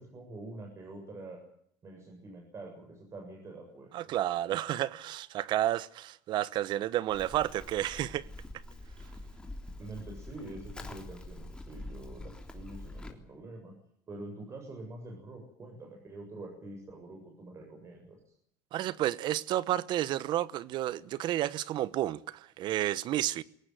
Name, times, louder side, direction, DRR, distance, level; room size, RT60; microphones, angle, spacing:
voice 1, 0.0-1.4 1.8-4.1 9.8-13.7 14.1-18.3, right 2 dB, 30° right, 7.6 m, -46 dB
voice 2, 3.9-8.2 18.7-23.4, right 13 dB, 55° right, 1.1 m, -31 dB
Livestock farm animals working animals, 7.1-13.1, left 2 dB, 10° left, 3.5 m, -45 dB
22.0 x 18.5 x 9.3 m
cardioid pair, 120°, 9 cm